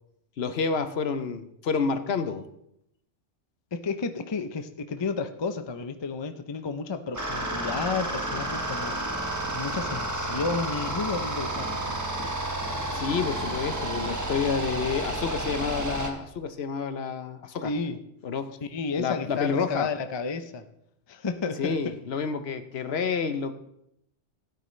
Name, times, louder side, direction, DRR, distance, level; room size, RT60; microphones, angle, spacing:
voice 1, 0.4-2.4 12.9-17.7 18.2-18.6 19.0-19.9 21.6-23.5, left 5 dB, 65° left, 9 dB, 1.0 m, -29 dB
voice 2, 3.7-9.0 9.5-12.0 17.6-18.0 18.7-20.6 21.1-21.9, left 4 dB, 35° left, 9 dB, 0.5 m, -32 dB
sound 1, 7.1-16.1, right 1 dB, 15° right, 1.2 m, -31 dB
16.0 x 9.4 x 3.2 m, 0.78 s
omnidirectional pair, 1.2 m